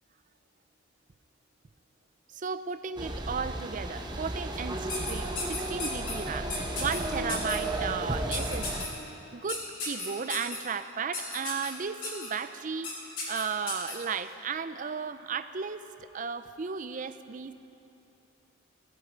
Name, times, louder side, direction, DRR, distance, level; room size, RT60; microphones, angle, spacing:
voice 1, 2.3-8.9 9.3-12.9 13.3-15.8 16.1-17.5, right 6 dB, 40° right, 12 dB, 0.5 m, -35 dB
sound 1, 3.0-8.9, right 1 dB, 20° right, 0.9 m, -34 dB
sound 2, 4.9-6.1 6.5-7.0 7.3-7.6 8.3-8.9 9.5-10.6 11.1-11.7 12.0-12.3 12.8-12.9 13.2-13.9, left 3 dB, 45° left, 4.1 m, -34 dB
17.5 x 14.0 x 5.2 m, 2.9 s
head